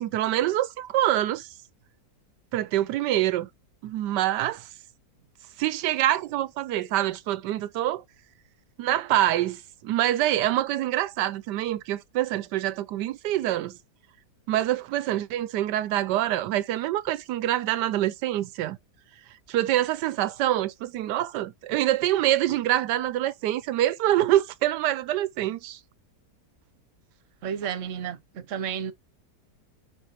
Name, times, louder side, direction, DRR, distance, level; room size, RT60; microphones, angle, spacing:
voice 1, 0.0-1.5 2.5-3.5 3.8-4.7 5.6-8.0 8.8-13.8 14.5-18.8 19.5-25.8, right 13 dB, 90° right, 1.2 m, -25 dB
voice 2, 27.4-28.9, right 8 dB, 55° right, 1.1 m, -32 dB
9.7 x 4.5 x 2.9 m
omnidirectional pair, 1.8 m